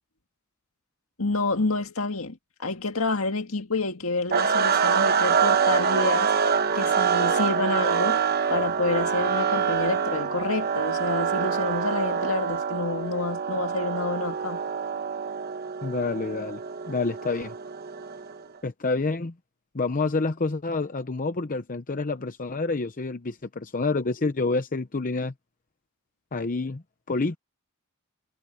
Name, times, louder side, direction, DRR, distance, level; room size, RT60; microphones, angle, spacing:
voice 1, 1.2-6.3 6.7-8.2 8.5-14.6, left 3 dB, 65° left, 2.1 m, -28 dB
sound 1, 4.3-18.4, right 6 dB, 45° right, 1.1 m, -25 dB
voice 2, 15.8-16.6 16.9-17.5 18.6-19.3 19.7-25.3 26.3-27.4, left 3 dB, 40° left, 0.8 m, -28 dB
head